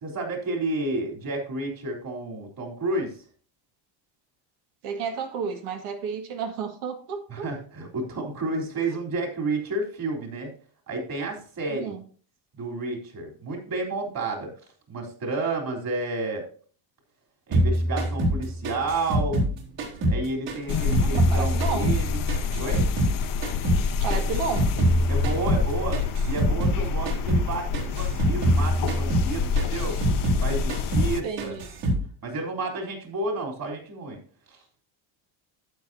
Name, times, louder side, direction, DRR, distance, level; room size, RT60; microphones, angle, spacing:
voice 1, 0.0-3.2 7.3-10.5 10.9-11.9 12.6-14.5 14.9-16.4 17.5-19.4 20.1-22.2 22.5-22.9 25.1-30.0 30.4-31.5 32.2-34.2 34.5-34.6, right 2 dB, 45° right, 1 dB, 3.6 m, -31 dB
voice 2, 4.8-7.5 11.7-12.0 21.3-21.9 24.0-24.7 31.2-31.7, right 6 dB, 85° right, 5 dB, 2.0 m, -31 dB
sound 1, 17.5-20.2 20.5-23.2 23.4-26.8 27.1-27.5 27.7-30.4 30.7-31.1 31.4-32.0, right 1 dB, 60° right, 3.8 m, -24 dB
sound 2, 20.7-31.2, left 5 dB, 45° left, 0.7 m, -27 dB
12.0 x 8.3 x 2.7 m, 0.43 s
cardioid pair, 125°, 49 cm